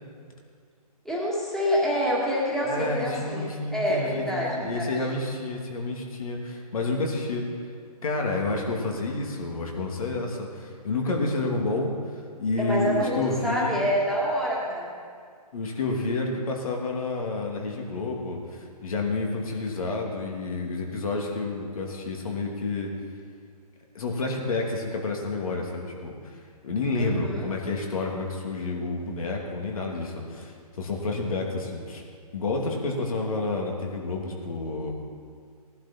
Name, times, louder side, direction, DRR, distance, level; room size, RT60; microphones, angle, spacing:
voice 1, 1.0-4.9 12.6-14.9 27.0-27.5, equal, ahead, -6 dB, 2.1 m, -27 dB
voice 2, 2.6-7.4 8.0-13.8 15.5-22.9 23.9-26.1 26.6-32.0 32.3-34.9, left 3 dB, 60° left, 1 dB, 2.6 m, -29 dB
18.0 x 11.5 x 4.4 m, 2.1 s
hypercardioid pair, 150°, 20 cm